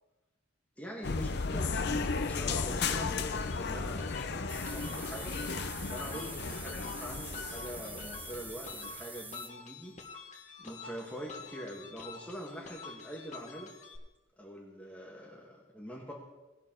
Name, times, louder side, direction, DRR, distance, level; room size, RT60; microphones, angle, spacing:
voice 1, 0.8-4.1 4.7-5.4 5.9-9.9 10.6-13.7 14.4-16.1, equal, 5° left, -3 dB, 1.4 m, -44 dB
sound 1, 1.0-8.9, left 4 dB, 60° left, 0.7 m, -35 dB
sound 2, 3.3-14.0, left 5 dB, 35° left, 1.5 m, -48 dB
sound 3, 4.5-9.5, right 3 dB, 10° right, 0.4 m, -46 dB
19.0 x 6.5 x 3.8 m, 1.1 s
head